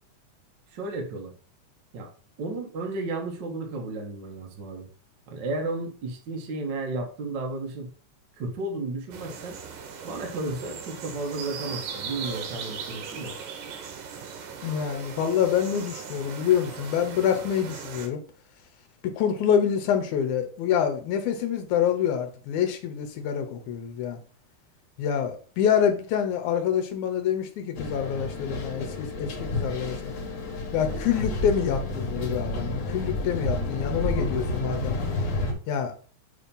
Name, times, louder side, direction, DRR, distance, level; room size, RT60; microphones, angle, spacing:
voice 1, 0.7-1.3 1.9-2.1 2.4-4.9 5.3-7.9 8.4-9.6 10.0-13.3, right 2 dB, 55° right, 1.3 m, -33 dB
sound 1, 9.1-18.1, right 6 dB, 90° right, 2.5 m, -38 dB
voice 2, 14.6-18.2 19.0-24.2 25.0-30.1 30.7-35.0 35.7-35.9, left 8 dB, 80° left, 2.4 m, -26 dB
sound 2, 27.8-35.5, left 1 dB, 60° left, 2.1 m, -30 dB
6.9 x 2.9 x 5.3 m
omnidirectional pair, 3.5 m